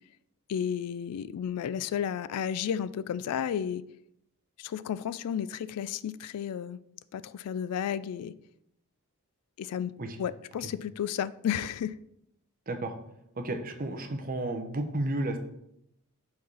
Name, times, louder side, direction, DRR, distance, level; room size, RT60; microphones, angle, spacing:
voice 1, 0.5-3.8 4.6-6.8 7.1-8.3 9.6-12.0, left 8 dB, 85° left, 0.3 m, -32 dB
voice 2, 13.4-15.4, right 2 dB, 40° right, 0.7 m, -32 dB
4.7 x 4.6 x 5.6 m
head